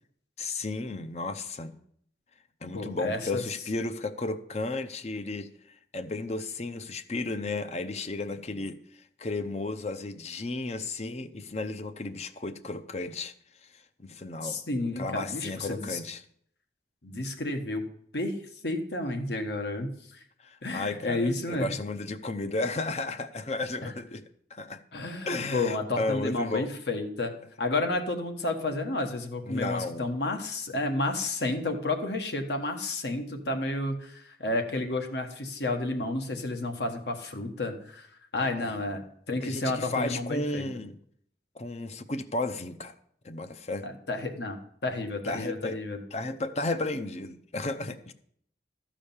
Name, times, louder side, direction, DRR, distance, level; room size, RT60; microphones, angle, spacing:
voice 1, 0.4-1.8 2.6-13.3 13.6-16.2 20.4-24.2 24.5-24.8 25.3-26.7 29.5-30.1 38.6-38.7 39.4-41.0 41.5-42.9 43.2-43.9 45.2-45.8 46.1-48.1, left 2 dB, 40° left, 0.6 m, -34 dB
voice 2, 2.7-3.4 14.4-16.0 17.0-17.8 18.1-18.4 18.6-20.2 20.6-21.7 23.8-23.9 24.9-27.3 27.6-38.1 38.3-40.7 43.8-44.6 44.8-46.0, left 2 dB, 70° left, 1.5 m, -31 dB
13.0 x 5.0 x 7.1 m
head